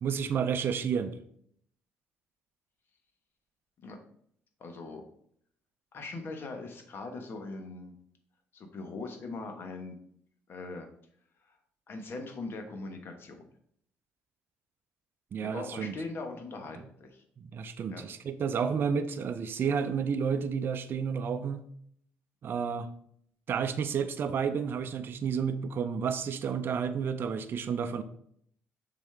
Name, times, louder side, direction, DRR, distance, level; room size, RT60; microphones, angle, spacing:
voice 1, 0.0-1.2 15.3-16.0 17.4-21.6 22.4-22.9 23.5-28.0, right 6 dB, 50° right, 9 dB, 0.5 m, -31 dB
voice 2, 4.6-5.0 5.9-8.0 8.5-10.0 10.5-10.9 11.4-11.6 11.9-13.5 15.4-17.2 17.9-18.0, left 3 dB, 50° left, 4 dB, 1.3 m, -41 dB
6.9 x 4.1 x 3.4 m, 0.66 s
supercardioid pair, 85°, 5 cm